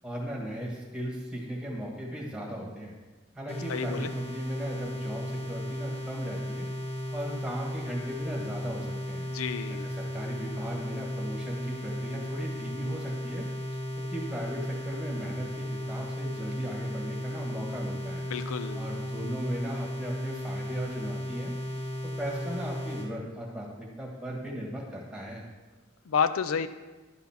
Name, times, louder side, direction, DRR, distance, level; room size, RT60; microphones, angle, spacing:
voice 1, 0.0-2.9 3.3-6.7 7.1-9.3 9.8-13.5 14.1-18.2 18.7-21.9 22.2-25.4, equal, 5° right, -2 dB, 1.5 m, -37 dB
sound 1, 3.5-23.1, equal, 30° left, 1.4 m, -35 dB
voice 2, 3.7-4.1 9.3-9.9 18.3-18.9 26.1-26.7, left 6 dB, 85° left, 12 dB, 0.4 m, -30 dB
11.0 x 4.1 x 5.7 m, 1.2 s
head